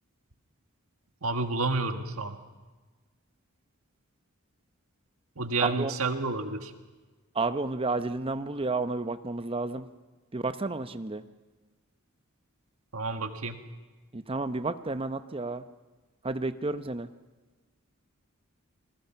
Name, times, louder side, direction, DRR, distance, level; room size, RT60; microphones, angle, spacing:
voice 1, 1.2-2.4 5.4-6.7 12.9-13.6, right 3 dB, 75° right, 7 dB, 1.8 m, -30 dB
voice 2, 5.6-5.9 7.3-9.9 10.3-11.2 14.1-15.6 16.2-17.1, right 3 dB, 25° right, 11 dB, 0.8 m, -31 dB
27.5 x 21.0 x 5.8 m, 1.3 s
head